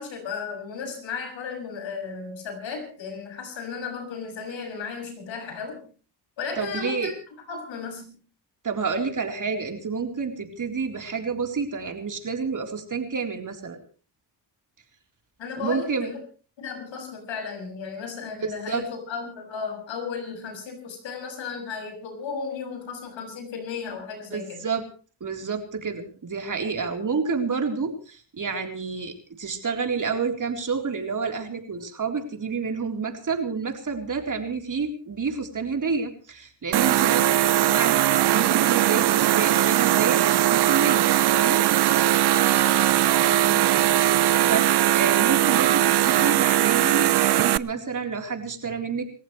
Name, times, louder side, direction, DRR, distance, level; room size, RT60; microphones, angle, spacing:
voice 1, 0.0-5.8 6.4-7.1 7.5-8.2 15.4-16.2 16.6-24.7 42.3-43.7, left 5 dB, 85° left, 3 dB, 7.0 m, -35 dB
voice 2, 6.6-7.1 8.6-13.8 15.6-16.1 18.4-18.8 24.3-24.8 25.2-41.1 41.3-41.6 44.4-49.0, right 5 dB, 45° right, 3 dB, 4.0 m, -29 dB
sound 1, 36.7-47.6, right 13 dB, 60° right, 0.7 m, -20 dB
28.5 x 14.5 x 3.3 m, 0.39 s
cardioid pair, 90°, 44 cm